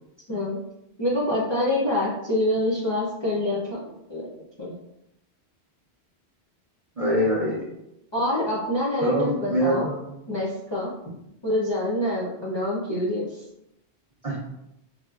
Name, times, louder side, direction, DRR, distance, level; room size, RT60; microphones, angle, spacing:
voice 1, 0.3-0.6 1.0-4.3 4.6-4.8 8.1-9.9 10.3-10.9 11.4-13.4, left 1 dB, 35° left, -7 dB, 0.5 m, -26 dB
voice 2, 7.0-7.6 9.0-10.1 14.2-14.4, equal, 40° right, -5 dB, 0.6 m, -24 dB
4.3 x 2.0 x 2.3 m, 0.84 s
omnidirectional pair, 1.1 m